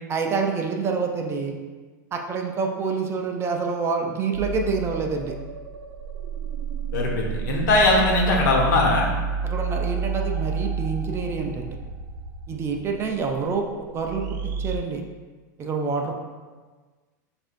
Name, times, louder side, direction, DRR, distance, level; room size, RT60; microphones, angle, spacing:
voice 1, 0.1-1.6 2.1-5.3 9.4-11.8 12.5-13.7 13.9-15.0 15.6-16.1, right 5 dB, 25° right, 3 dB, 0.5 m, -27 dB
sound 1, 4.3-14.8, right 5 dB, 80° right, 0.5 m, -30 dB
voice 2, 6.9-9.1, left 2 dB, 70° left, -1 dB, 1.1 m, -20 dB
7.3 x 2.6 x 2.5 m, 1.4 s
hypercardioid pair, 125°, 10 cm